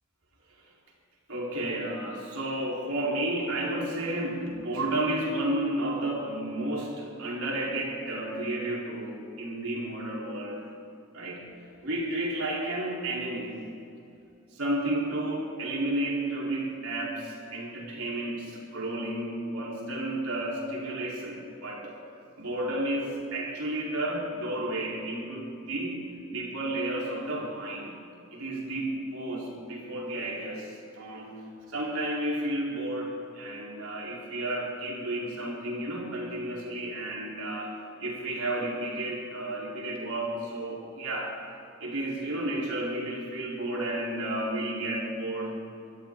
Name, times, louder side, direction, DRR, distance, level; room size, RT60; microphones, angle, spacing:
voice 1, 1.3-10.6 11.1-11.5 11.8-13.6 14.5-22.0 22.4-26.0 26.3-28.0 28.3-31.3 31.7-41.3 41.8-45.6, right 1 dB, 80° right, -4 dB, 4.4 m, -32 dB
25.0 x 13.5 x 4.0 m, 2.7 s
head